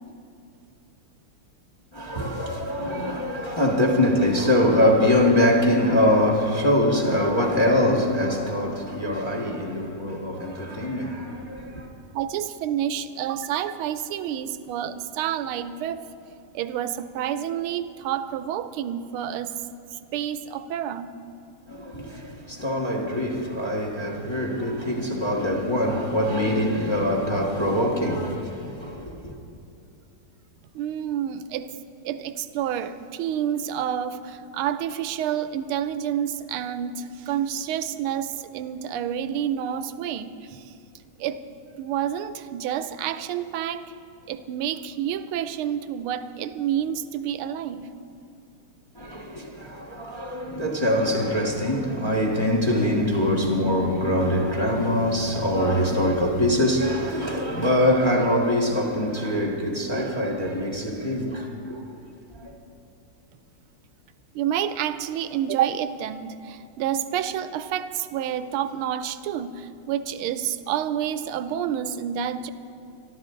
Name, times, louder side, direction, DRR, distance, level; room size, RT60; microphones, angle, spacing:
voice 1, 1.9-11.9 21.7-29.3 48.9-61.8 62.4-62.5, left 1 dB, 15° left, 1.4 m, -23 dB
voice 2, 12.1-16.0 16.5-19.5 19.9-21.1 30.7-31.7 32.0-40.7 41.2-41.4 41.8-43.9 44.3-47.9 64.3-72.5, right 10 dB, 85° right, 1.5 m, -29 dB
26.5 x 12.0 x 3.8 m
omnidirectional pair, 2.3 m